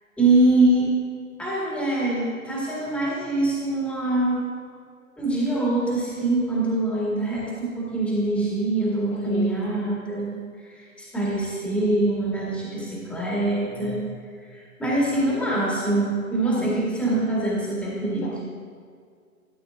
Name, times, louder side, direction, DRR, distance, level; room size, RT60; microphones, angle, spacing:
voice 1, 0.2-0.9 1.4-4.4 5.2-10.4 10.7-14.2 14.5-18.4, right 2 dB, 5° left, -6 dB, 1.8 m, -24 dB
voice 2, 9.1-9.6 16.4-16.8 18.0-18.4, left 3 dB, 45° left, -1 dB, 1.5 m, -34 dB
13.0 x 8.2 x 2.4 m, 2.1 s
figure-of-eight pair, 130°, 44 cm